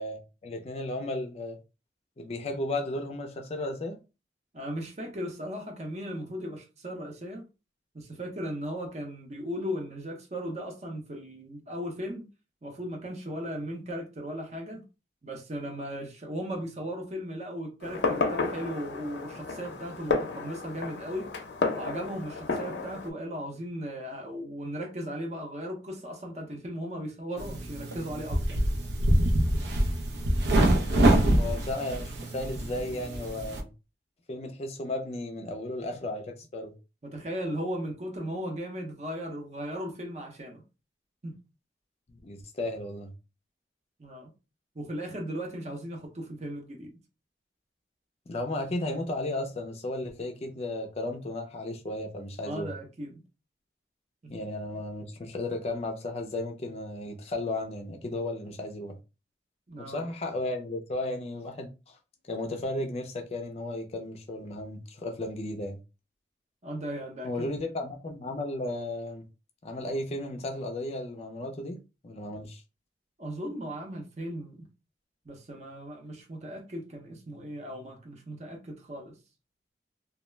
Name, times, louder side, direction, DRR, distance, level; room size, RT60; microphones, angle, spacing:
voice 1, 0.0-1.6 2.2-4.0 31.4-33.7 34.3-36.7 42.1-43.1 48.3-52.7 54.3-58.9 59.8-62.0 62.3-65.8 67.2-69.2 69.6-71.8 72.0-72.6, left 2 dB, 35° left, 0.4 m, -34 dB
voice 2, 4.5-7.4 7.9-12.3 12.6-14.8 15.2-21.3 21.7-28.6 37.0-40.6 41.2-41.4 44.0-44.3 44.7-46.9 52.4-53.2 54.2-54.4 59.7-60.1 66.6-67.5 73.2-74.7 75.2-79.2, equal, 40° right, 0.6 m, -37 dB
Fireworks, 17.8-23.1, left 3 dB, 85° left, 0.5 m, -32 dB
sound 1, 27.4-33.6, right 1 dB, 80° right, 0.5 m, -25 dB
2.3 x 2.1 x 3.1 m
head